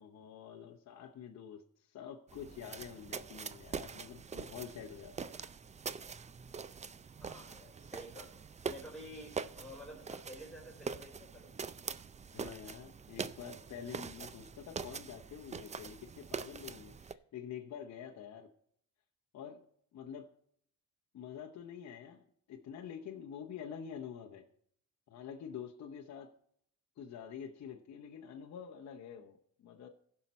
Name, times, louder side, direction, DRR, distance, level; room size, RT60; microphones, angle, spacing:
voice 1, 0.0-5.4 12.3-18.5 19.3-19.6 19.9-20.3 21.1-22.2 22.5-24.5 25.1-26.3 27.0-29.9, left 8 dB, 60° left, 3 dB, 0.8 m, -47 dB
sound 1, 2.3-17.1, right 5 dB, 25° right, 0.4 m, -44 dB
voice 2, 7.2-8.3 8.6-11.5, equal, ahead, -4 dB, 4.1 m, -50 dB
15.5 x 5.8 x 4.1 m, 0.67 s
cardioid pair, 90°, 30 cm